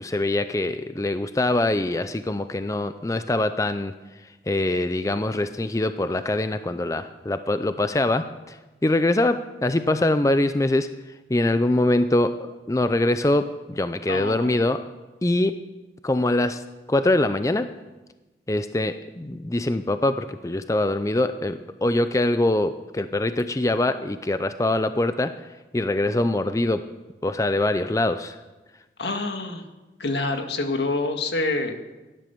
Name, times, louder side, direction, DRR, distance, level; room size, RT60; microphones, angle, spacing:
voice 1, 0.0-3.9 4.5-8.6 8.8-10.9 11.3-14.8 15.2-15.6 16.0-16.6 16.9-17.8 18.5-25.3 25.7-26.8 27.2-28.4, left 2 dB, 20° left, 10 dB, 0.4 m, -23 dB
voice 2, 14.1-14.5 29.0-29.7 30.0-31.7, left 2 dB, 80° left, 6 dB, 1.7 m, -26 dB
16.5 x 11.0 x 6.9 m, 1.1 s
head